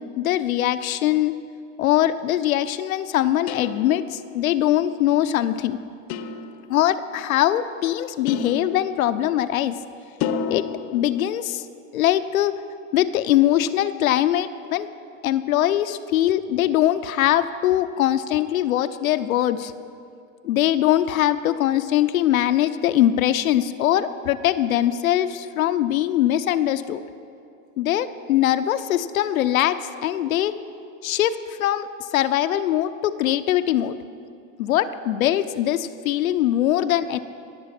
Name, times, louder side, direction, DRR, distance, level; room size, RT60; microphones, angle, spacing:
voice 1, 0.2-1.3 1.8-5.8 6.7-9.8 10.5-11.6 11.9-12.6 12.9-14.9 15.2-19.7 20.4-27.0 27.8-30.5 31.0-34.0 34.6-37.2, left 12 dB, 85° left, 10 dB, 0.7 m, -22 dB
sound 1, 3.5-4.3 6.1-6.9 8.3-9.3 10.2-11.2, left 6 dB, 45° left, 0.8 m, -31 dB
17.5 x 7.6 x 5.9 m, 2.5 s
hypercardioid pair, 115°, 40 cm